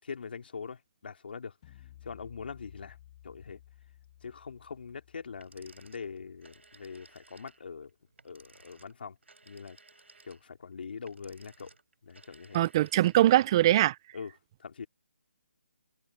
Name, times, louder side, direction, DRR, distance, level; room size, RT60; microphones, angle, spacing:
voice 1, 0.0-3.0 3.2-3.6 4.2-7.9 8.2-9.2 9.4-9.8 10.2-11.7 12.0-12.6 14.1-14.3 14.6-14.9, left 5 dB, 60° left, 3.2 m, -43 dB
sound 1, 1.6-7.0, left 13 dB, 30° left, 4.1 m, -56 dB
sound 2, 5.4-13.5, right 3 dB, 90° right, 5.0 m, -58 dB
voice 2, 12.5-14.0, right 14 dB, 25° right, 0.5 m, -22 dB
hypercardioid pair, 160°, 6 cm